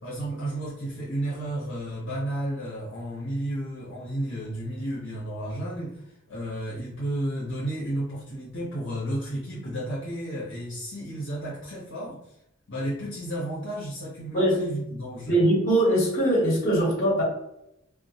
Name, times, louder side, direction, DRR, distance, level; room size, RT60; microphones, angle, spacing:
voice 1, 0.0-12.2 12.7-15.3, right 1 dB, 65° left, -6 dB, 0.8 m, -32 dB
voice 2, 15.3-17.2, right 1 dB, 45° left, -5 dB, 1.1 m, -21 dB
2.1 x 2.1 x 2.7 m, 0.82 s
head